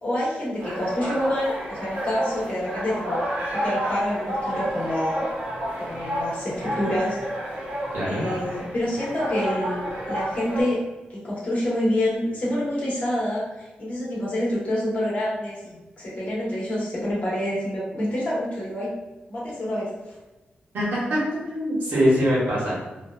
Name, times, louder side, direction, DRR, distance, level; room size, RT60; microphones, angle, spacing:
voice 1, 0.0-3.2 3.5-5.2 5.8-7.2 8.0-10.8 11.1-18.9 19.3-20.2, left 1 dB, 45° left, -6 dB, 0.9 m, -27 dB
sound 1, 0.6-10.6, equal, 60° right, 0.8 m, -30 dB
voice 2, 7.9-8.2 20.7-21.2 21.5-22.8, equal, 80° right, -6 dB, 1.1 m, -22 dB
2.7 x 2.3 x 2.2 m, 1.1 s
wide cardioid pair, 165°, 3 cm